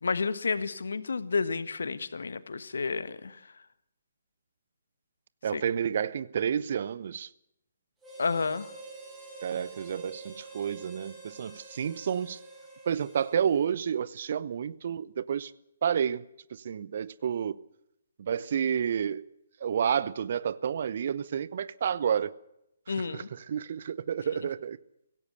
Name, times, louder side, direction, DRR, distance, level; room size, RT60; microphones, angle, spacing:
voice 1, 0.0-3.4 5.5-5.6 8.2-8.7 22.9-23.3, left 4 dB, 60° left, 1.5 m, -30 dB
voice 2, 5.4-7.3 9.4-12.4 12.9-15.5 15.8-16.2 16.5-17.6 18.2-19.2 19.6-22.3 22.9-24.8, right 8 dB, 45° right, 0.9 m, -30 dB
Harmonica, 8.0-13.7, right 2 dB, 10° right, 7.4 m, -47 dB
24.5 x 17.0 x 6.8 m
figure-of-eight pair, 135°, 0 cm